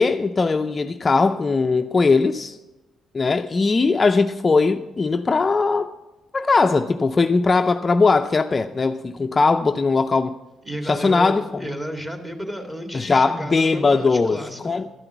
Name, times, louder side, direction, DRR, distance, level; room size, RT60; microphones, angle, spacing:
voice 1, 0.0-2.6 3.1-5.9 6.3-10.3 10.8-11.4 12.9-14.9, left 4 dB, 30° left, 0.4 m, -19 dB
voice 2, 10.7-14.9, equal, 15° right, 1.9 m, -32 dB
12.5 x 5.8 x 8.0 m
cardioid pair, 90°, 0 cm